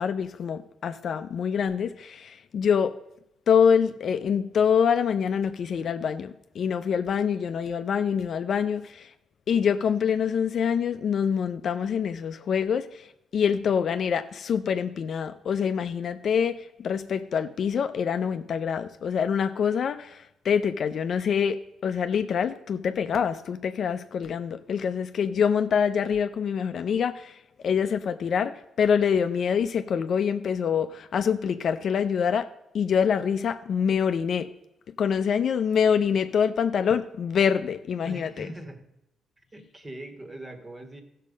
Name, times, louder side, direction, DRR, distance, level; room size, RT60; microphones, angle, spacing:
voice 1, 0.0-3.0 3.5-9.1 9.5-32.5 32.7-34.5 35.0-38.5, left 7 dB, 60° left, 0.6 m, -25 dB
voice 2, 38.0-38.9 39.5-41.0, right 1 dB, 20° right, 1.6 m, -41 dB
14.0 x 6.6 x 5.2 m
cardioid pair, 90°, 0 cm